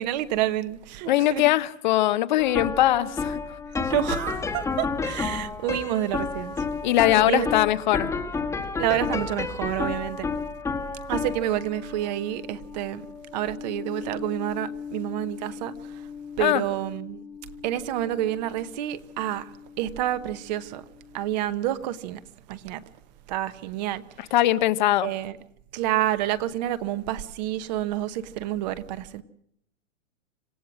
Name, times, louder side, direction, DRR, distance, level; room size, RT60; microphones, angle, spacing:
voice 1, 0.0-1.5 3.8-6.6 7.3-7.5 8.8-10.3 11.1-13.1 13.3-16.0 16.4-17.2 17.6-20.8 21.1-22.2 22.5-22.8 23.3-24.0 25.0-25.4 25.7-29.2, right 13 dB, 35° right, 1.0 m, -29 dB
voice 2, 1.1-3.4 6.8-8.1 16.4-16.6 24.3-25.1, left 14 dB, 35° left, 0.8 m, -21 dB
sound 1, 2.4-19.6, left 4 dB, 5° left, 1.3 m, -32 dB
27.0 x 15.5 x 6.2 m
hypercardioid pair, 150°, 38 cm